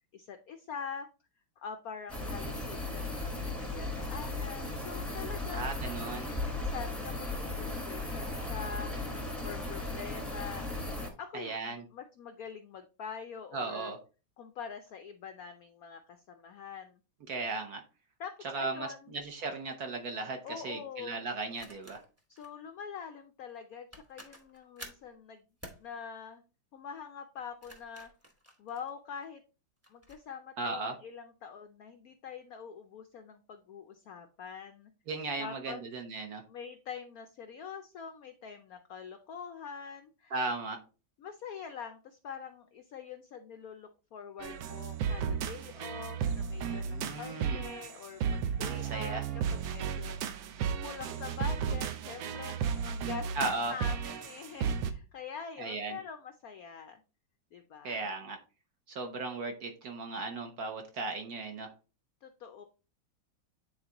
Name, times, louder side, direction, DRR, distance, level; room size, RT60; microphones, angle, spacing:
voice 1, 0.1-1.1 1.6-5.8 6.4-8.9 9.4-10.7 11.2-13.9 14.4-17.0 18.2-19.1 20.4-21.3 22.3-25.4 25.8-26.4 26.7-28.1 28.6-29.4 29.9-34.9 35.4-35.8 36.5-40.3 41.2-50.5 50.8-53.3 53.7-57.0 57.5-58.1 62.2-62.6, left 6 dB, 75° left, 7 dB, 0.8 m, -45 dB
sound 1, 2.1-11.1, left 2 dB, ahead, 0.9 m, -36 dB
voice 2, 5.5-6.3 11.3-11.8 13.5-14.0 17.3-17.8 18.4-20.4 20.6-22.0 30.6-30.9 35.1-36.4 40.3-40.8 46.8-47.6 48.7-49.2 53.3-53.7 55.6-56.0 57.8-58.4 58.9-61.7, right 3 dB, 55° right, 4 dB, 1.3 m, -36 dB
sound 2, 19.1-19.3 21.5-22.5 23.6-23.7 23.9-25.1 25.6-25.9 27.4-29.3 29.8-30.2, equal, 15° right, 0.5 m, -51 dB
sound 3, 44.4-54.9, right 7 dB, 75° right, 1.5 m, -34 dB
9.4 x 4.0 x 2.9 m, 0.33 s
omnidirectional pair, 2.2 m